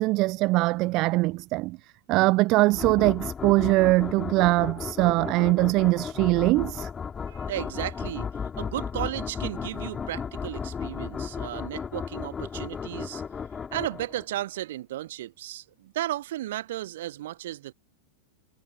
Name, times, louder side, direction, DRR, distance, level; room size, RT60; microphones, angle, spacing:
voice 1, 0.0-1.8 2.1-6.9, right 21 dB, 40° right, 0.4 m, -22 dB
sound 1, 2.7-14.4, left 6 dB, 20° left, 5.1 m, -35 dB
voice 2, 7.3-13.2 13.7-17.7, right 14 dB, 55° right, 1.7 m, -34 dB
figure-of-eight pair, 90°, 0 cm